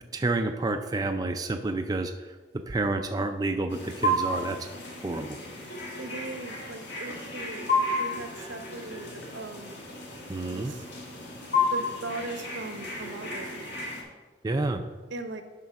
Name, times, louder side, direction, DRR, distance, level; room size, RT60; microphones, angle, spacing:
voice 1, 0.0-2.4 2.7-4.6 5.0-5.4 10.3-10.7 14.4-14.8, right 2 dB, 20° right, 5 dB, 0.3 m, -29 dB
sound 1, 3.7-14.0, left 2 dB, 60° left, 1.8 m, -32 dB
voice 2, 6.0-9.8 10.5-10.8 11.7-13.6 15.1-15.4, right 2 dB, 75° right, 7 dB, 0.8 m, -39 dB
10.5 x 3.8 x 5.8 m, 1.3 s
head